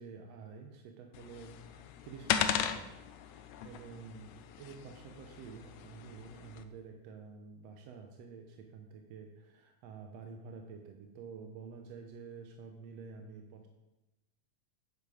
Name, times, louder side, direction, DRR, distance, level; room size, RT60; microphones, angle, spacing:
voice 1, 0.0-2.9 3.2-13.7, right 5 dB, 70° right, 3 dB, 1.6 m, -49 dB
sound 1, 1.1-6.6, left 9 dB, 80° left, 1.7 m, -37 dB
9.9 x 7.3 x 4.9 m, 1.0 s
omnidirectional pair, 3.7 m